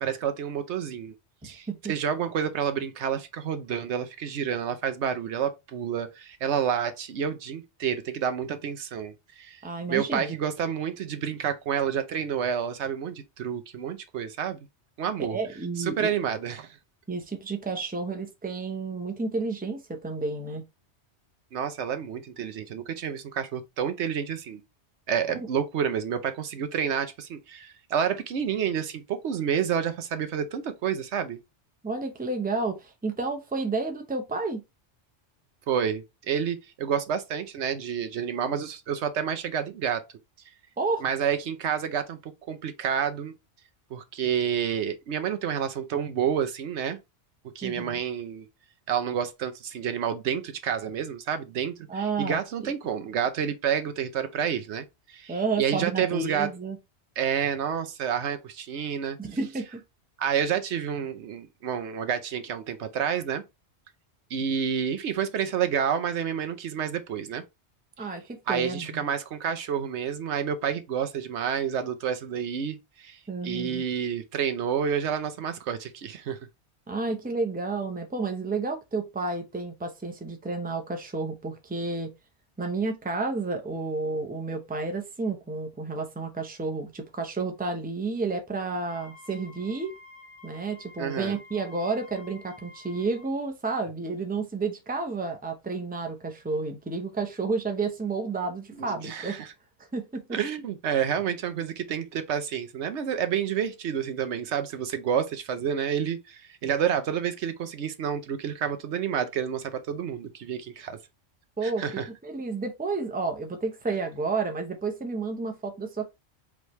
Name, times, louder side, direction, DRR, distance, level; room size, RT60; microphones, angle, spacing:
voice 1, 0.0-1.1 1.4-9.6 9.9-14.6 15.0-15.4 15.8-16.8 21.5-24.6 25.1-31.4 35.7-40.0 41.0-43.3 43.9-47.0 47.5-48.5 48.9-56.5 57.2-59.2 60.2-63.4 64.3-67.4 68.0-68.1 68.5-76.4 91.0-91.4 98.8-99.5 100.3-111.0 111.6-112.1, right 8 dB, 75° right, 1.0 m, -29 dB
voice 2, 9.6-10.4 15.3-16.1 17.1-20.6 25.3-25.5 31.8-34.6 40.8-41.0 47.6-48.0 51.9-52.7 55.3-56.8 59.2-59.8 68.0-69.0 73.3-73.8 76.9-82.1 82.6-89.9 90.4-99.4 99.9-100.2 111.6-116.1, right 3 dB, 10° right, 0.7 m, -31 dB
Wind instrument woodwind instrument, 88.8-93.3, left 3 dB, 60° left, 1.8 m, -50 dB
4.8 x 3.2 x 3.1 m
omnidirectional pair, 1.2 m